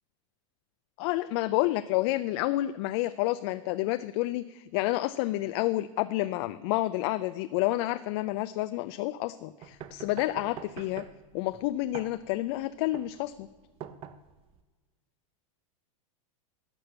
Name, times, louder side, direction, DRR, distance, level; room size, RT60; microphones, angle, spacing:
voice 1, 1.0-11.0 11.3-13.5, left 17 dB, 50° left, 12 dB, 0.4 m, -29 dB
sound 1, 9.6-14.6, right 9 dB, 30° right, 0.7 m, -45 dB
12.5 x 6.0 x 6.8 m, 1.3 s
hypercardioid pair, 125°, 18 cm